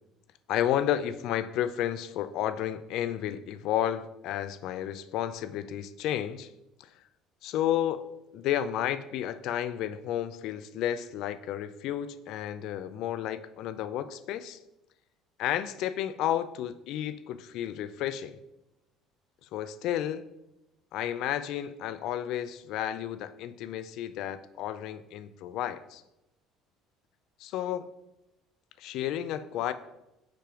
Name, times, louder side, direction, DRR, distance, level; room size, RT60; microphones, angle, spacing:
voice 1, 0.5-6.5 7.4-8.0 8.3-14.6 15.4-18.4 19.5-20.3 20.9-26.0 27.4-27.9 28.8-29.7, left 11 dB, 55° left, 0.3 m, -32 dB
5.7 x 3.7 x 4.9 m
cardioid pair, 175°, 0 cm